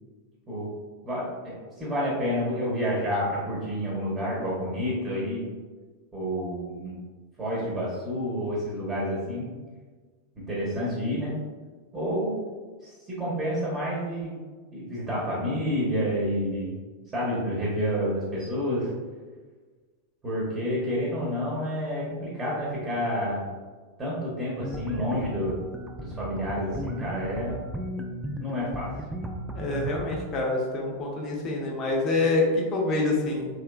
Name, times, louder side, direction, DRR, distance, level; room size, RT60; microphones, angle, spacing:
voice 1, 1.0-5.5 6.1-7.0 7.4-9.5 10.4-11.4 11.9-12.3 12.8-14.4 14.7-16.7 17.1-18.9 20.2-23.4 24.0-25.6 26.0-27.6 28.4-28.9, equal, 20° right, -6 dB, 1.0 m, -29 dB
sound 1, 24.6-30.3, equal, 5° right, 0.3 m, -36 dB
voice 2, 29.5-33.5, left 2 dB, 30° left, -1 dB, 0.7 m, -26 dB
3.1 x 3.0 x 2.3 m, 1.4 s
figure-of-eight pair, 90°, 0 cm